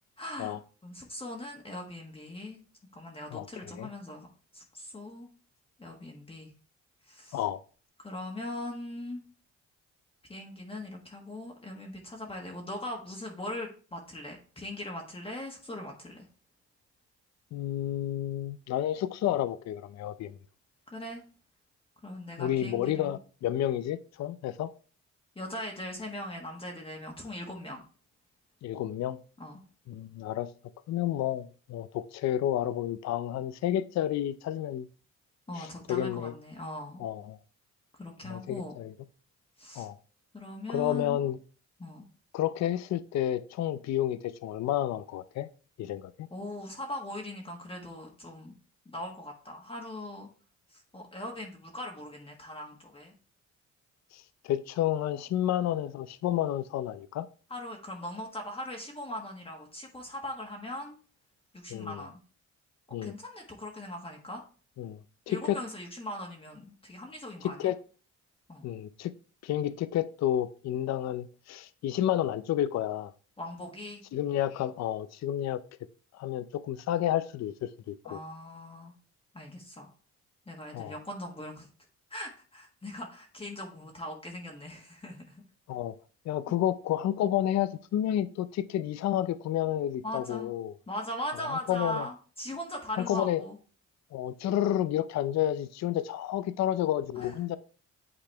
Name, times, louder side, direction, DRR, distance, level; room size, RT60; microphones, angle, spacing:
voice 1, 0.2-0.6 0.8-2.6 2.9-4.3 4.5-5.3 5.8-6.5 7.0-7.4 8.0-9.2 10.3-16.2 20.9-21.2 22.0-23.2 25.3-27.8 29.4-29.6 35.5-37.0 37.9-38.8 39.6-39.9 40.3-41.2 41.8-42.1 46.3-48.5 48.8-50.3 50.7-53.1 57.5-61.0 61.5-62.2 63.0-64.4 65.3-67.7 68.5-68.6 73.4-74.0 78.0-78.9 79.3-79.9 80.5-81.7 82.1-85.4 86.5-86.6 90.0-90.5 90.9-93.6 97.1-97.3, left 1 dB, 20° left, 1.5 m, -40 dB
voice 2, 3.3-3.9 7.3-7.6 17.5-20.3 22.4-24.7 28.6-29.2 29.9-30.5 30.9-34.9 35.6-36.3 37.0-37.4 38.3-38.9 39.8-40.0 40.7-41.4 42.3-45.5 45.8-46.3 54.1-57.3 61.7-62.0 62.9-63.1 64.8-65.0 65.3-65.6 67.6-67.7 68.6-69.1 69.4-73.1 74.1-75.6 76.1-78.2 80.7-81.0 85.7-85.9 86.3-90.7 91.7-92.1 93.0-93.4 94.1-97.6, left 12 dB, 60° left, 0.5 m, -30 dB
8.8 x 4.0 x 3.3 m
cardioid pair, 90°, 30 cm